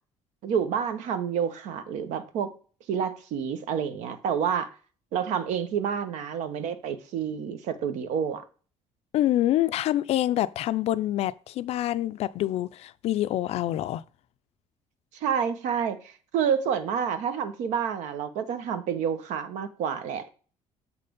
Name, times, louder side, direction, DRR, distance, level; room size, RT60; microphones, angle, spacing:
voice 1, 0.4-2.5 2.9-4.7 5.1-8.4 15.1-20.3, right 7 dB, 75° right, 1.1 m, -29 dB
voice 2, 9.1-14.0, left 13 dB, 55° left, 0.4 m, -26 dB
7.2 x 4.2 x 5.2 m
cardioid pair, 145°, 12 cm